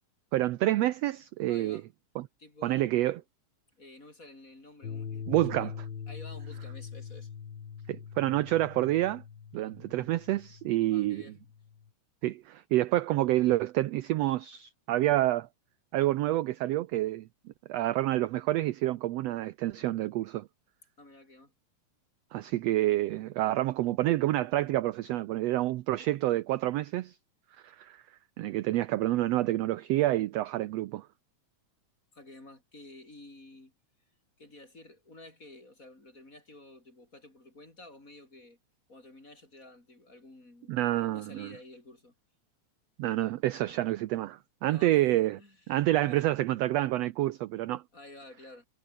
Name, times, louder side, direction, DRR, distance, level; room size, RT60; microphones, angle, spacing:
voice 1, 0.3-1.8 2.1-2.3 2.6-3.2 5.3-5.7 7.9-9.2 9.5-11.2 12.2-15.5 15.9-17.3 17.7-20.5 22.3-27.1 27.6-28.0 28.4-31.1 40.7-41.5 43.0-45.4 45.7-47.8, right 15 dB, 75° right, 1.5 m, -28 dB
voice 2, 1.5-1.9 2.4-3.1 3.8-5.7 6.1-7.3 10.9-11.4 21.0-21.5 32.1-33.7 34.4-38.6 38.9-42.1 44.6-46.3 47.9-48.7, left 2 dB, 25° left, 5.7 m, -51 dB
sound 1, 4.8-11.9, left 7 dB, 45° left, 2.3 m, -43 dB
omnidirectional pair, 3.6 m